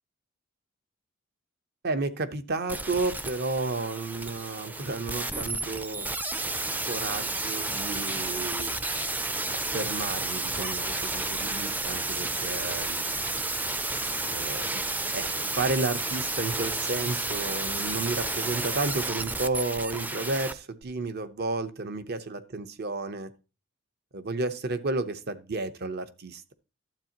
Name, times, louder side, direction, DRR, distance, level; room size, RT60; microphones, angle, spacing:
voice 1, 1.8-6.1 6.8-8.7 9.7-13.1 14.3-14.8 15.1-23.3 24.1-26.5, right 3 dB, 50° right, 0.8 m, -32 dB
sound 1, 2.7-20.5 20.8-20.9, right 2 dB, 10° right, 0.4 m, -31 dB
12.0 x 8.0 x 2.9 m
head